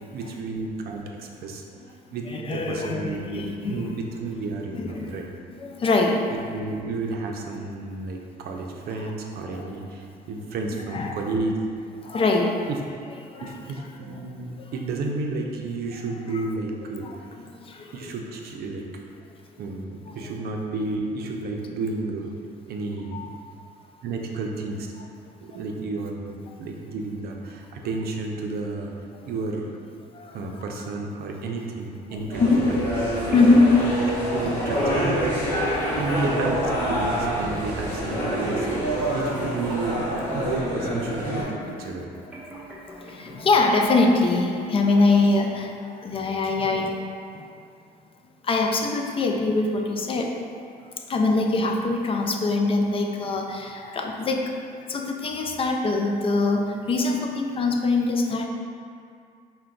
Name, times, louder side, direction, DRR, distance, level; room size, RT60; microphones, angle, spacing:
voice 1, 0.1-1.6 2.1-5.3 6.5-11.6 12.7-12.8 13.4-17.3 17.9-19.0 19.6-22.3 22.7-23.3 24.0-24.9 25.4-28.9 29.2-29.7 30.3-32.8 33.3-33.5 34.3-35.4 35.9-40.0 40.3-42.1, right 3 dB, 65° right, 1 dB, 0.6 m, -31 dB
voice 2, 2.3-3.9 4.7-5.1 5.5-6.3 9.4-9.7 10.9-11.2 12.0-12.7 13.3-13.5 17.0-17.2 17.7-18.1 20.2-20.3 23.1-23.3 30.1-30.4 32.1-32.7 33.3-33.8 35.7-35.9 41.0-41.1 43.0-45.7 46.0-47.0 47.3-47.5 48.4-50.4 51.1-54.5 54.9-58.5, left 3 dB, 35° left, 2 dB, 0.4 m, -23 dB
sound 1, 32.3-41.4, equal, 15° left, 1.4 m, -26 dB
sound 2, 33.3-45.3, right 1 dB, 10° right, 0.9 m, -42 dB
5.6 x 2.2 x 3.8 m, 2.3 s
cardioid pair, 110°, 17 cm